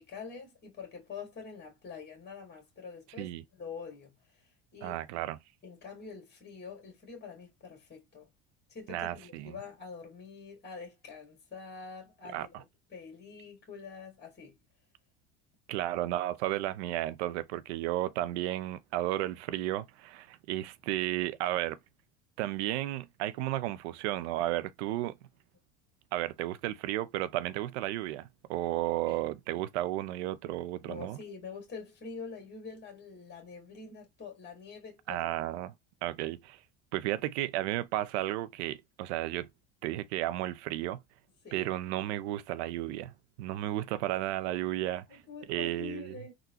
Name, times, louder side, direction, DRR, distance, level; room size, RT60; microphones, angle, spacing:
voice 1, 0.0-4.1 4.7-5.0 5.6-8.3 8.7-12.5 12.9-14.6 29.1-29.2 30.8-35.3 41.4-41.7 45.1-46.3, left 5 dB, 30° left, 1.7 m, -45 dB
voice 2, 4.8-5.4 8.9-9.6 12.3-12.6 15.7-21.8 22.4-25.2 26.1-31.2 35.1-35.7 36.0-36.6 36.9-39.5 39.8-41.0 41.5-45.2 45.5-46.1, right 14 dB, 85° right, 0.5 m, -33 dB
3.7 x 2.2 x 2.7 m
supercardioid pair, 90°, 33 cm